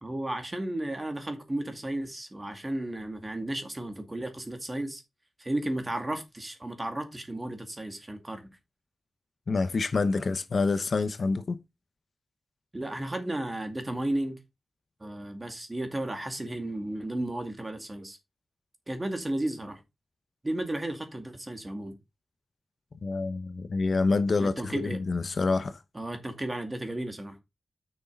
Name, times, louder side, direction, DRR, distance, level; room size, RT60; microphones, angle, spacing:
voice 1, 0.0-5.0 5.4-8.5 12.7-14.4 15.0-18.2 18.9-19.8 20.4-22.0 24.4-25.0 25.9-27.4, right 1 dB, 20° right, 2.1 m, -33 dB
voice 2, 9.5-11.6 23.0-25.8, left 3 dB, 55° left, 0.8 m, -27 dB
9.3 x 6.5 x 3.9 m
wide cardioid pair, 145°, 0 cm